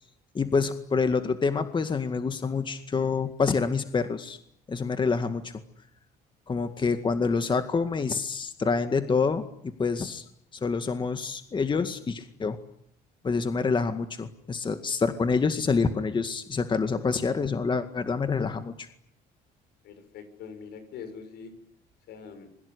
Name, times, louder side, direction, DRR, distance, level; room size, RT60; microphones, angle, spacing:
voice 1, 0.3-4.4 4.7-5.5 6.5-10.3 10.5-12.6 13.2-18.9, left 4 dB, 30° left, 8 dB, 2.0 m, -27 dB
voice 2, 19.8-21.5 22.1-22.5, left 6 dB, 75° left, 10 dB, 6.9 m, -43 dB
26.5 x 22.5 x 9.9 m, 0.72 s
cardioid pair, 110°, 17 cm